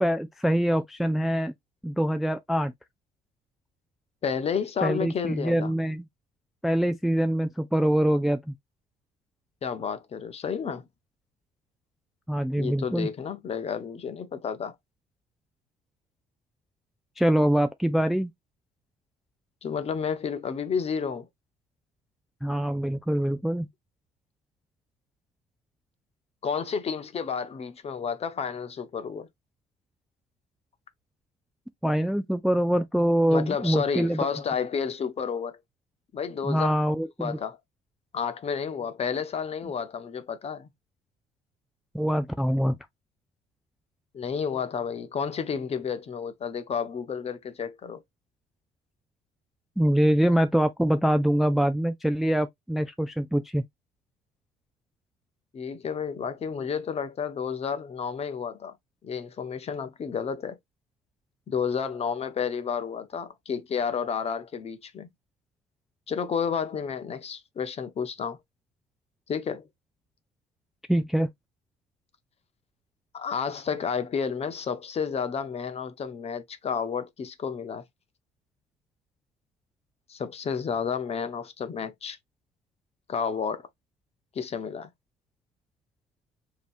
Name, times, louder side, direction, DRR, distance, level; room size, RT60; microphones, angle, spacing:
voice 1, 0.0-1.5 1.8-2.7 4.8-6.1 6.6-8.5 12.3-13.1 17.2-18.3 22.4-23.7 31.8-34.3 36.4-37.4 41.9-42.8 49.8-53.6 70.9-71.3, right 1 dB, ahead, 0.3 m, -24 dB
voice 2, 4.2-5.7 9.6-10.9 12.6-14.7 19.6-21.3 26.4-29.3 33.3-35.6 36.1-36.7 37.2-37.6 38.1-40.7 44.1-48.0 55.5-58.8 59.0-60.6 61.5-65.1 66.1-68.4 69.3-69.7 73.1-77.8 80.1-82.2 83.1-83.6 84.3-84.9, left 6 dB, 35° left, 0.8 m, -31 dB
5.0 x 2.9 x 2.5 m
cardioid pair, 110°, 17 cm